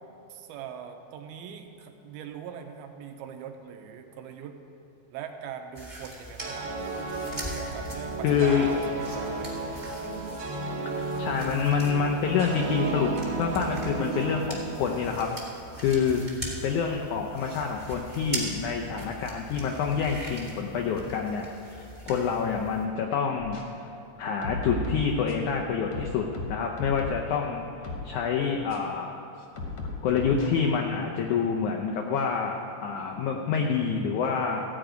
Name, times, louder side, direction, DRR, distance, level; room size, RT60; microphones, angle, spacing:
voice 1, 0.3-4.6 5.1-6.7 7.3-9.7 10.0-10.2 10.7-10.8, right 8 dB, 85° right, 5 dB, 2.6 m, -41 dB
sound 1, 5.7-22.8, right 1 dB, 15° right, 1.1 m, -41 dB
sound 2, 6.4-15.7, right 3 dB, 65° right, 2.6 m, -34 dB
voice 2, 8.2-8.7 11.2-16.2 16.6-23.6 24.2-27.6 28.0-29.2 30.0-34.6, left 6 dB, 90° left, 1 dB, 1.7 m, -27 dB
sound 3, 23.4-23.6 24.2-25.5 25.9-27.3 27.8-28.1 28.7-28.8 29.6-30.5, left 2 dB, 55° left, 1.8 m, -35 dB
14.5 x 5.0 x 9.0 m, 2.7 s
omnidirectional pair, 4.4 m